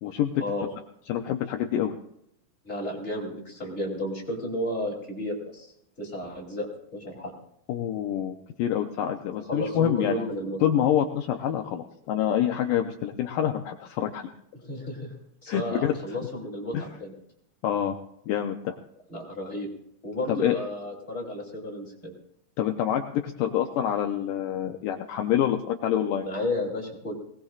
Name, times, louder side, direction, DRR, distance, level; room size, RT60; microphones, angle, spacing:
voice 1, 0.0-0.4 1.1-2.0 7.7-10.2 10.6-14.3 15.5-15.9 16.7-16.9 17.6-18.0 18.3-18.8 20.3-20.6 22.6-26.3, left 10 dB, 75° left, 4 dB, 2.1 m, -26 dB
voice 2, 2.6-5.7 6.0-7.3 9.5-10.6 14.6-15.1 15.4-17.1 19.1-19.7 20.0-22.1 26.2-27.1, left 1 dB, 20° left, -1 dB, 2.9 m, -32 dB
21.5 x 19.0 x 2.4 m, 0.75 s
omnidirectional pair, 4.3 m